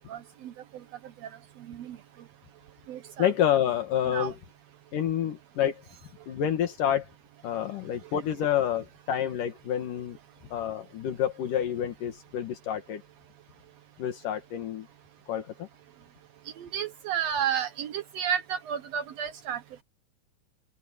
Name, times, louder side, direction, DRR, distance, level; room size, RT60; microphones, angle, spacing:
voice 1, 0.1-0.5 1.7-2.0 2.9-3.3 4.1-4.3 16.6-19.6, right 8 dB, 75° right, 1.5 m, -31 dB
voice 2, 3.2-4.4 4.9-5.8 6.3-7.1 7.4-10.2 10.5-13.0 14.0-14.9 15.3-15.7, left 10 dB, 75° left, 3.2 m, -28 dB
open air
omnidirectional pair, 3.9 m